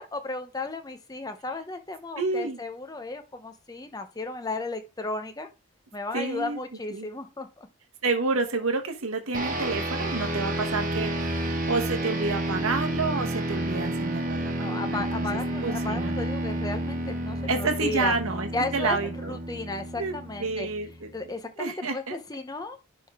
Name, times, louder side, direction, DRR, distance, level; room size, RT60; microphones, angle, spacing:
voice 1, 0.0-5.5 5.9-7.7 14.6-18.1 18.5-19.0 19.3-20.7 21.1-22.8, left 2 dB, 15° left, 7 dB, 0.7 m, -34 dB
voice 2, 2.2-2.6 6.1-6.6 6.9-7.1 8.0-16.2 17.5-19.4 19.9-20.1 20.4-21.1 21.6-22.2, right 3 dB, 70° right, 5 dB, 1.1 m, -29 dB
sound 1, 9.3-21.0, right 1 dB, 35° right, 1.3 m, -30 dB
11.0 x 3.7 x 3.6 m, 0.28 s
head